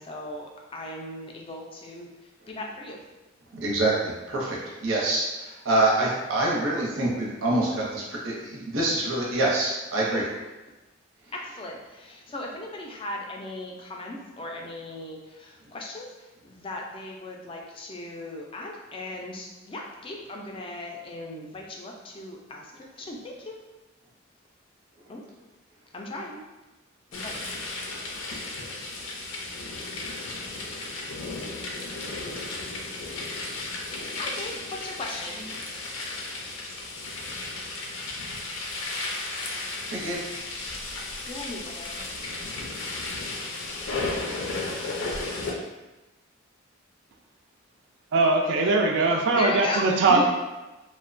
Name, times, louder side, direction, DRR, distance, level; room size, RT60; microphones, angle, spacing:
voice 1, 0.0-3.0 6.0-6.1 10.1-10.2 11.3-23.5 25.1-25.2 25.9-26.4 27.1-27.4 34.1-34.5 34.8-35.5 41.3-42.0 49.3-50.0, left 2 dB, 25° left, 0 dB, 0.3 m, -37 dB
voice 2, 3.5-10.2 39.9-40.2 50.1-50.2, right 2 dB, 90° right, -4 dB, 0.7 m, -26 dB
sound 1, 27.1-45.5, left 2 dB, 85° left, 0.5 m, -34 dB
voice 3, 48.1-50.2, right 3 dB, 60° right, 2 dB, 0.3 m, -21 dB
2.8 x 2.1 x 2.5 m, 1.1 s
head